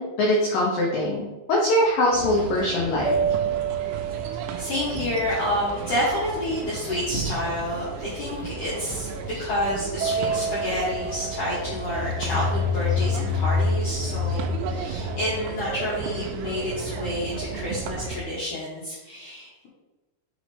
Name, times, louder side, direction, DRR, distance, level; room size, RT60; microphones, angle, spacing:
voice 1, 0.0-3.1, left 1 dB, 85° left, -3 dB, 1.9 m, -22 dB
sound 1, 2.1-18.2, right 5 dB, 85° right, 2.8 m, -34 dB
sound 2, 3.0-6.6 10.0-13.0, right 6 dB, 40° right, 1.5 m, -30 dB
voice 2, 4.6-19.7, left 1 dB, 70° left, -8 dB, 2.0 m, -29 dB
sound 3, 11.6-16.2, left 5 dB, 50° left, 1.7 m, -27 dB
8.7 x 4.2 x 3.4 m, 1.1 s
omnidirectional pair, 5.5 m